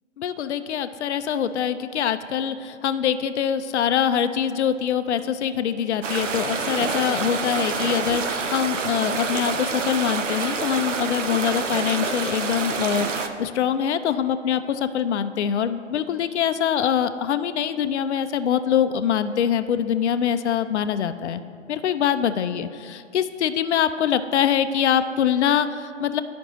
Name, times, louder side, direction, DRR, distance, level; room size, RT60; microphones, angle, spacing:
voice 1, 0.2-21.4 21.7-26.2, left 9 dB, 65° left, 11 dB, 0.5 m, -24 dB
sound 1, 6.0-13.3, right 5 dB, 80° right, 0.8 m, -27 dB
12.0 x 5.1 x 3.0 m, 2.2 s
figure-of-eight pair, 135°, 37 cm